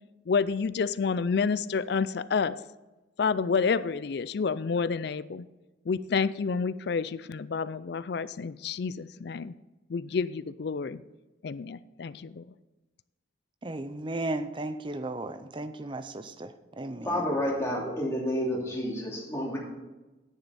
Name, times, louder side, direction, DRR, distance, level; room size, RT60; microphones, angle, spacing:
voice 1, 0.3-2.6 3.2-5.5 5.9-9.5 9.9-11.0 11.4-12.5, left 5 dB, 55° left, 0.4 m, -29 dB
voice 2, 13.6-17.3, right 2 dB, 25° right, 0.6 m, -35 dB
voice 3, 17.0-19.6, equal, 15° left, 2.8 m, -30 dB
10.0 x 9.5 x 4.2 m
head